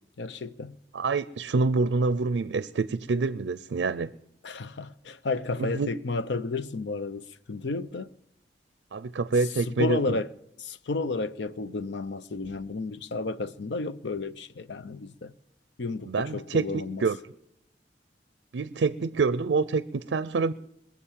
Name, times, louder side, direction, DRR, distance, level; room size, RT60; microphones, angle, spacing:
voice 1, 0.2-0.8 4.4-8.1 9.7-10.3 10.6-15.3 15.8-17.0, left 3 dB, 80° left, 0.6 m, -32 dB
voice 2, 0.9-4.1 5.6-5.9 8.9-10.2 16.0-16.6 17.0-17.2 18.5-20.5, right 4 dB, 75° right, 0.5 m, -26 dB
21.5 x 7.4 x 7.4 m
head